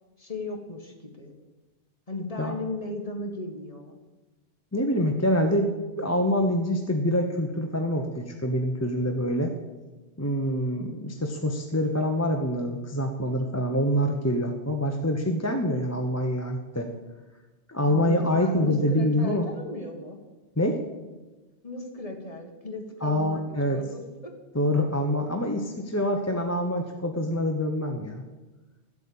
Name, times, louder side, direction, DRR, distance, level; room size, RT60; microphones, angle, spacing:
voice 1, 0.2-1.4 2.1-4.0 17.9-20.2 21.6-24.3, left 2 dB, 30° left, 2 dB, 2.0 m, -36 dB
voice 2, 4.7-5.7 6.0-9.5 10.2-16.9 17.7-19.5 20.6-20.8 23.0-23.8 24.5-28.2, equal, 15° left, 3 dB, 0.9 m, -26 dB
13.0 x 8.3 x 8.7 m, 1.2 s
omnidirectional pair, 1.2 m